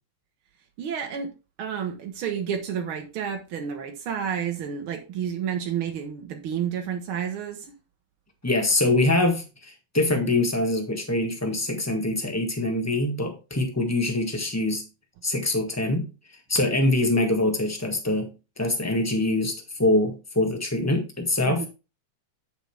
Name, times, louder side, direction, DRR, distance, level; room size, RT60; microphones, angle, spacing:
voice 1, 0.8-1.3 1.6-7.7 21.4-21.7, right 8 dB, 60° right, 1.4 m, -30 dB
voice 2, 8.4-14.8 15.2-16.1 16.5-18.3 18.6-19.5 19.8-21.6, left 2 dB, 15° left, 0.5 m, -24 dB
9.9 x 6.5 x 3.4 m
omnidirectional pair, 3.6 m